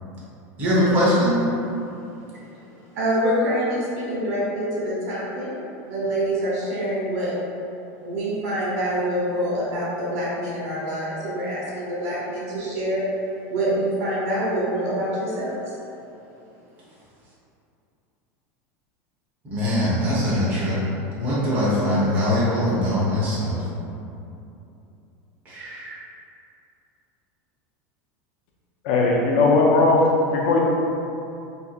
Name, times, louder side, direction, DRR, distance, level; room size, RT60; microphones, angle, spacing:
voice 1, 0.6-1.4 19.4-20.8 21.1-23.6 25.4-25.9, equal, 20° right, -9 dB, 0.9 m, -22 dB
voice 2, 2.9-5.5 5.9-7.3 8.0-13.0 13.5-15.7, right 1 dB, 85° right, -7 dB, 1.4 m, -26 dB
voice 3, 28.8-30.0 30.5-30.6, left 3 dB, 50° left, -1 dB, 0.5 m, -17 dB
4.4 x 2.7 x 2.4 m, 2.7 s
supercardioid pair, 180°, 8 cm